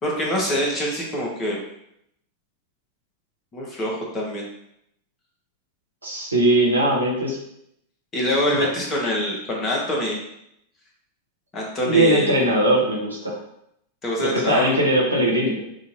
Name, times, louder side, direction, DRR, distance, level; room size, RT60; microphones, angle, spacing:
voice 1, 0.0-1.6 3.5-4.5 8.1-10.2 11.5-12.5 14.0-14.7, left 1 dB, 25° left, -3 dB, 1.4 m, -25 dB
voice 2, 6.0-7.4 8.5-8.6 11.8-13.4 14.2-15.6, right 1 dB, 80° right, -3 dB, 1.2 m, -20 dB
6.3 x 2.8 x 2.7 m, 0.75 s
figure-of-eight pair, 90°, 0 cm